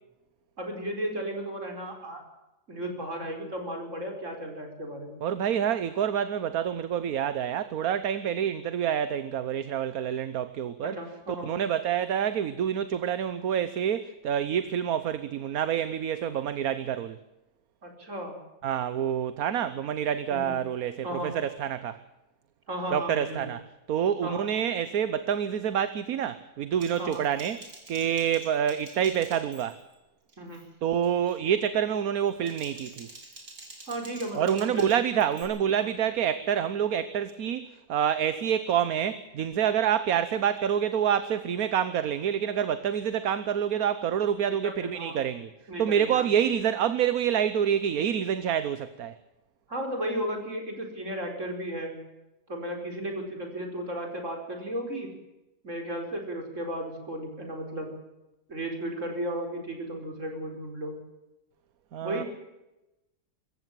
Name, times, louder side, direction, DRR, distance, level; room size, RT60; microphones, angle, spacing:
voice 1, 0.6-2.2 2.7-5.2 10.8-11.5 17.8-18.3 20.3-20.5 21.0-21.4 22.7-23.5 24.2-24.5 27.0-27.2 30.4-30.7 33.9-34.9 35.8-35.9 44.5-45.2 45.7-46.3 49.7-52.0 52.5-55.1 55.6-57.9 58.5-61.0 62.0-62.3, right 1 dB, 45° right, 3 dB, 5.1 m, -34 dB
voice 2, 5.2-11.0 11.4-17.2 18.6-22.0 22.9-23.6 23.9-27.6 27.9-29.8 30.8-33.1 34.3-45.5 45.8-49.1 61.9-62.2, right 9 dB, 65° right, 13 dB, 1.3 m, -27 dB
Typing, 26.8-30.0 30.3-30.7 31.0-31.4 32.2-35.4, right 2 dB, 85° right, 5.2 m, -48 dB
25.0 x 14.5 x 7.6 m, 0.96 s
omnidirectional pair, 1.7 m